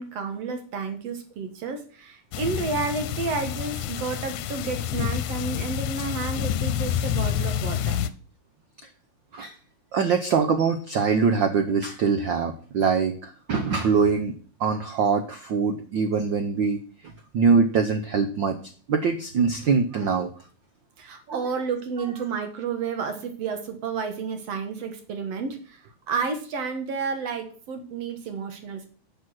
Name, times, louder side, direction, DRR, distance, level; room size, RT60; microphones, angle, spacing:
voice 1, 0.0-8.0 21.0-25.8 26.1-28.9, right 5 dB, 60° right, 6 dB, 2.4 m, -31 dB
sound 1, 2.3-8.1, left 10 dB, 90° left, 2.0 m, -28 dB
voice 2, 9.9-14.3 14.6-16.8 17.3-18.6 18.9-20.3 21.3-21.5, right 5 dB, 80° right, 7 dB, 1.0 m, -23 dB
11.0 x 6.2 x 6.2 m, 0.42 s
omnidirectional pair, 3.3 m